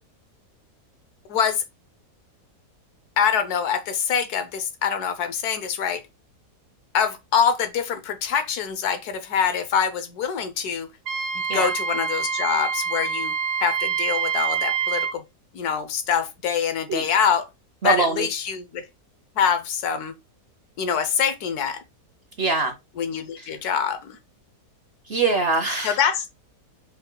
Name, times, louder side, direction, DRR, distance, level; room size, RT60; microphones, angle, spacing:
voice 1, 1.3-1.6 3.2-6.0 6.9-10.9 11.3-13.3 13.6-15.2 15.5-17.5 17.8-18.9 19.4-20.1 20.8-21.8 23.0-24.2 25.8-26.4, left 7 dB, 75° left, 1.3 m, -24 dB
Wind instrument woodwind instrument, 11.1-15.2, right 6 dB, 75° right, 1.1 m, -26 dB
voice 2, 17.8-18.3 22.4-22.7 23.4-23.5 25.1-26.0, right 3 dB, 55° right, 0.7 m, -23 dB
4.6 x 2.8 x 3.7 m
omnidirectional pair, 1.7 m